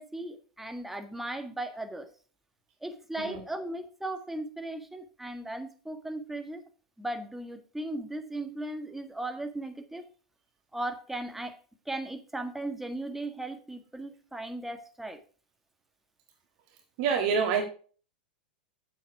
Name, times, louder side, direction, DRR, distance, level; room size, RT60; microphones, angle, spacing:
voice 1, 0.0-2.1 2.8-6.6 7.0-10.0 10.7-11.5 11.8-15.2, right 1 dB, 5° right, 6 dB, 1.6 m, -37 dB
voice 2, 17.0-17.6, right 6 dB, 55° right, 3 dB, 1.8 m, -26 dB
8.9 x 7.7 x 4.7 m, 0.40 s
hypercardioid pair, 100°, 5 cm